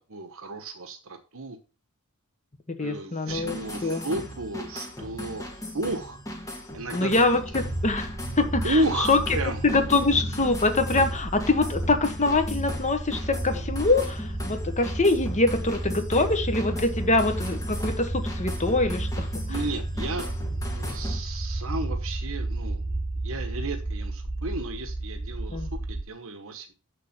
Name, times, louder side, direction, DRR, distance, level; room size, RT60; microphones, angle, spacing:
voice 1, 0.1-1.6 2.8-6.2 6.7-7.1 8.6-10.1 19.5-20.3 20.7-22.8 23.2-26.7, right 2 dB, 65° right, 6 dB, 1.2 m, -32 dB
voice 2, 2.7-3.5 3.8-4.0 6.9-9.2 9.6-19.4 25.5-25.7, left 3 dB, 35° left, 8 dB, 1.3 m, -24 dB
sound 1, 3.3-21.2, left 1 dB, 15° left, 1.9 m, -38 dB
sound 2, 7.5-26.0, right 1 dB, 20° right, 2.3 m, -32 dB
7.2 x 6.7 x 5.9 m, 0.33 s
head